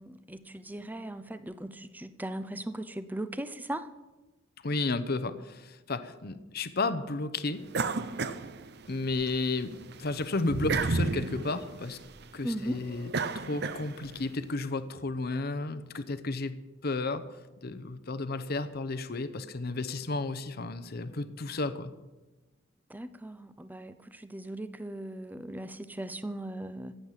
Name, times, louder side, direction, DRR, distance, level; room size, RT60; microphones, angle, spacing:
voice 1, 0.0-3.9 12.4-12.8 22.9-27.0, right 1 dB, 10° right, 13 dB, 0.7 m, -38 dB
voice 2, 4.6-7.6 8.9-9.7 10.0-12.0 12.3-13.1 13.3-16.6 16.8-17.2 17.6-21.9, left 3 dB, 50° left, 12 dB, 0.8 m, -32 dB
sound 1, 7.7-9.3 9.7-14.2, right 3 dB, 55° right, 0.7 m, -33 dB
15.5 x 8.6 x 7.4 m, 1.1 s
head